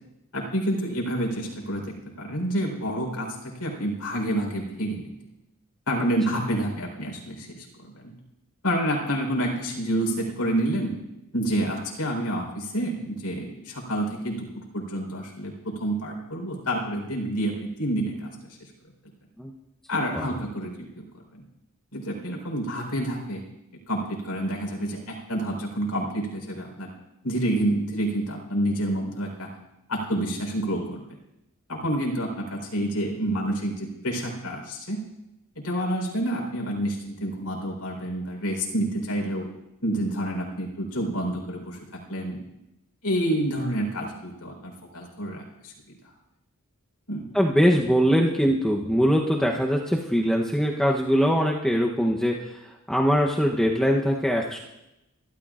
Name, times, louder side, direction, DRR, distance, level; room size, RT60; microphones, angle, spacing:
voice 1, 0.3-5.1 5.9-7.7 7.9-8.1 8.6-11.0 11.3-18.6 19.9-21.0 21.3-21.4 21.9-23.4 23.9-26.9 27.2-29.5 29.9-31.2 31.7-35.0 35.6-39.5 39.8-42.4 43.0-46.0 47.1-47.3, right 1 dB, 90° left, 1 dB, 4.2 m, -28 dB
voice 2, 47.3-54.6, equal, 5° left, -1 dB, 0.9 m, -22 dB
24.5 x 13.0 x 2.5 m, 0.91 s
head